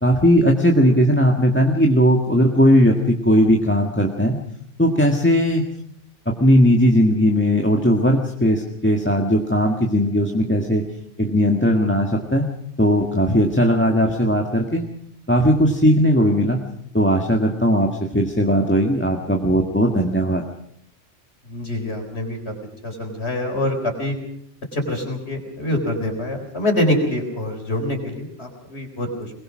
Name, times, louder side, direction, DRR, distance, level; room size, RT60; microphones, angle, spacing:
voice 1, 0.0-4.4 4.8-5.6 6.2-10.8 11.2-12.4 12.8-14.8 15.3-16.6 16.9-20.4, equal, 10° left, 2 dB, 1.6 m, -18 dB
voice 2, 21.4-22.5 22.8-24.2 24.7-29.3, left 1 dB, 60° left, 3 dB, 4.5 m, -25 dB
22.5 x 20.5 x 6.3 m, 0.71 s
omnidirectional pair, 1.3 m